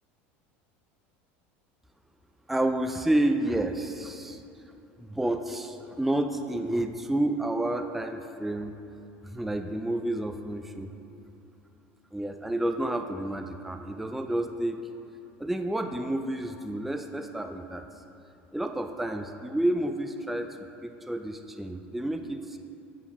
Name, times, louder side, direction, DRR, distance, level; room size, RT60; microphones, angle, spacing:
voice 1, 2.5-4.4 5.0-8.8 9.2-10.9 12.1-14.8 15.4-17.9 18.5-22.6, right 1 dB, 5° right, 6 dB, 0.3 m, -30 dB
8.3 x 3.8 x 5.9 m, 2.8 s
supercardioid pair, 110°, 6 cm